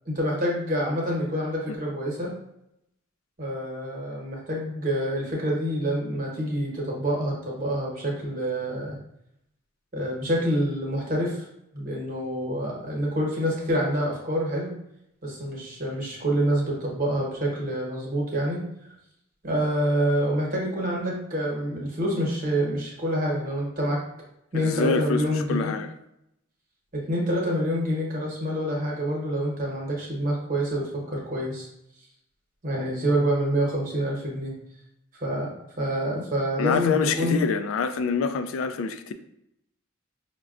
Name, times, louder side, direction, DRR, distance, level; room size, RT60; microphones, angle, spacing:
voice 1, 0.1-2.3 3.4-9.0 9.9-11.5 11.7-14.7 15.2-18.6 19.4-24.0 24.5-25.7 27.1-31.7 32.6-34.5 35.2-35.5 35.8-37.4, equal, 40° right, -2 dB, 0.9 m, -27 dB
voice 2, 24.5-25.2 25.5-25.9 36.6-39.1, left 5 dB, 75° left, 10 dB, 0.3 m, -26 dB
5.0 x 2.2 x 2.4 m, 0.79 s
head